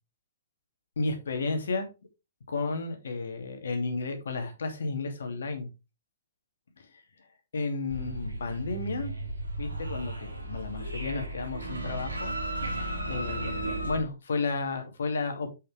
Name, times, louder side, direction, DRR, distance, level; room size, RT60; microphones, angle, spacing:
voice 1, 1.0-1.9 2.5-5.7 6.8-7.0 7.5-9.1 9.6-12.4 13.1-15.5, left 3 dB, 65° left, 5 dB, 2.7 m, -32 dB
sound 1, 7.9-14.0, right 1 dB, 85° right, 2.9 m, -35 dB
7.8 x 7.0 x 3.4 m, 0.26 s
figure-of-eight pair, 115°, 0 cm